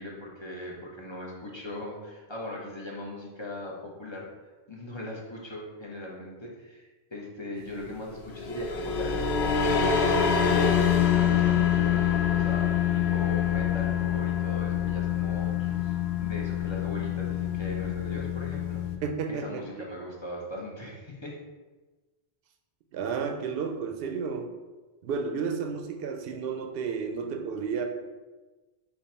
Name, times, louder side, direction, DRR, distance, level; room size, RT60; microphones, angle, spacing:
voice 1, 0.0-4.3 4.7-18.8 19.3-21.4, left 1 dB, 30° left, -3 dB, 0.8 m, -39 dB
sound 1, 8.3-19.0, left 8 dB, 80° left, 0.9 m, -26 dB
voice 2, 19.0-19.7 22.9-24.5 25.0-27.9, right 5 dB, 70° right, 4 dB, 0.7 m, -32 dB
5.4 x 2.3 x 4.2 m, 1.2 s
omnidirectional pair, 1.1 m